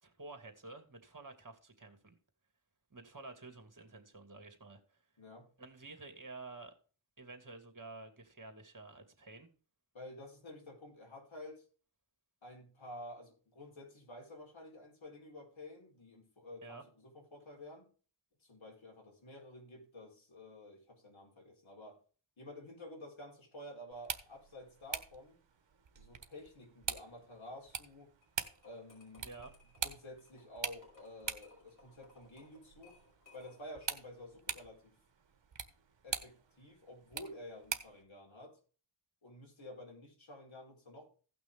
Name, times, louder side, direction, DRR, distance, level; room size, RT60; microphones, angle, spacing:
voice 1, 0.0-2.2 2.9-5.0 5.6-6.7 7.2-9.5 16.6-16.8 29.2-29.5, right 3 dB, 40° right, 2.4 m, -51 dB
voice 2, 5.2-5.5 9.9-11.6 12.4-17.9 18.4-22.0 22.4-25.4 25.9-28.1 28.6-29.3 29.8-33.0 33.3-34.9 36.0-38.6 39.2-41.1, left 1 dB, 75° left, 4.5 m, -51 dB
sound 1, 23.9-38.0, right 6 dB, 65° right, 1.2 m, -45 dB
sound 2, 28.2-33.8, left 2 dB, 40° left, 5.5 m, -63 dB
16.5 x 6.0 x 3.6 m
wide cardioid pair, 60°, 47 cm